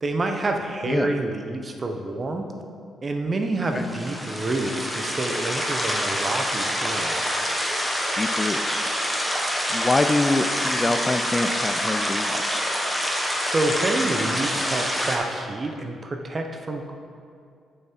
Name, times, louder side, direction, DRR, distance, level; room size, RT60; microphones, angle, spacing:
voice 1, 0.0-2.5 3.0-7.2 13.4-16.9, right 2 dB, 35° right, 4 dB, 0.9 m, -28 dB
sound 1, 3.8-15.2, equal, ahead, 1.3 m, -26 dB
voice 2, 8.1-8.9 9.7-12.7, left 2 dB, 20° left, 7 dB, 0.4 m, -25 dB
8.7 x 6.8 x 4.6 m, 2.3 s
cardioid pair, 85°, 0 cm